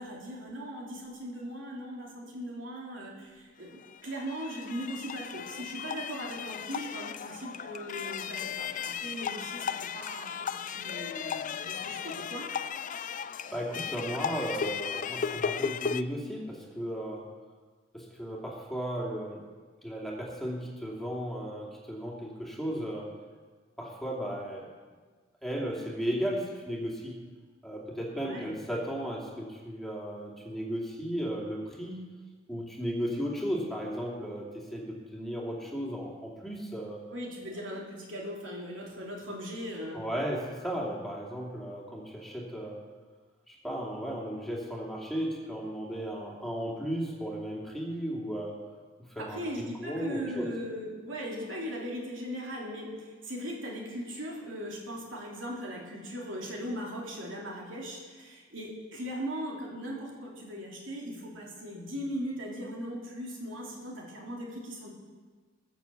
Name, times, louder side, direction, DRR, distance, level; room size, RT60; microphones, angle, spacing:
voice 1, 0.0-12.5 28.1-28.5 37.1-40.0 49.2-64.9, equal, 70° right, -2 dB, 3.2 m, -39 dB
sound 1, 3.7-16.0, left 7 dB, 40° left, 0.4 m, -36 dB
voice 2, 13.0-17.3 17.9-19.4 19.8-23.1 23.8-24.7 25.4-27.2 27.6-32.0 32.5-37.0 39.9-42.8 43.5-48.6 49.0-50.5, equal, ahead, -3 dB, 2.5 m, -35 dB
20.5 x 7.0 x 7.1 m, 1.4 s
head